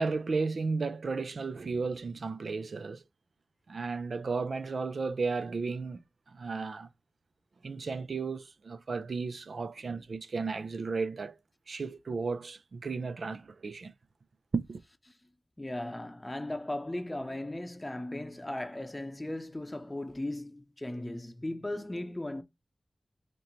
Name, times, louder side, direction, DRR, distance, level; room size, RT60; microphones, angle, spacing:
voice 1, 0.0-3.0 3.7-6.0 6.3-6.9 7.6-11.4 11.7-13.9 14.5-14.8, right 4 dB, 85° right, 0.4 m, -34 dB
voice 2, 15.6-22.4, left 1 dB, 20° left, 0.6 m, -37 dB
3.2 x 2.9 x 3.9 m
wide cardioid pair, 80°, 0 cm